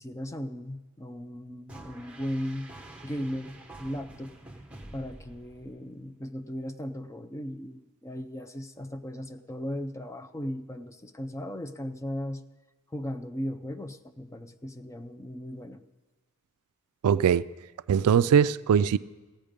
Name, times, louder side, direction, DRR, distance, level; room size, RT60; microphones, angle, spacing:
voice 1, 0.0-2.7 3.0-4.3 4.9-12.4 12.9-15.8, equal, 15° left, 0.5 m, -37 dB
sound 1, 1.7-6.0, right 1 dB, 5° right, 0.9 m, -47 dB
voice 2, 17.0-17.4 17.9-19.0, right 7 dB, 90° right, 0.3 m, -21 dB
15.0 x 9.0 x 5.1 m
head